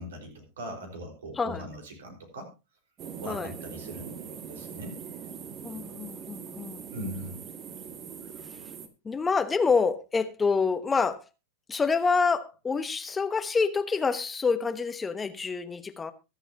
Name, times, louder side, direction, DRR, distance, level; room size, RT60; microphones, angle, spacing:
voice 1, 0.0-2.5 3.2-5.0 6.9-7.4, equal, 65° right, 4.7 m, -40 dB
sound 1, 3.0-8.9, right 7 dB, 30° right, 1.6 m, -42 dB
voice 2, 5.6-6.8 9.0-11.2 11.7-16.1, left 5 dB, 15° left, 1.1 m, -27 dB
23.0 x 8.1 x 2.9 m
figure-of-eight pair, 90°, 0 cm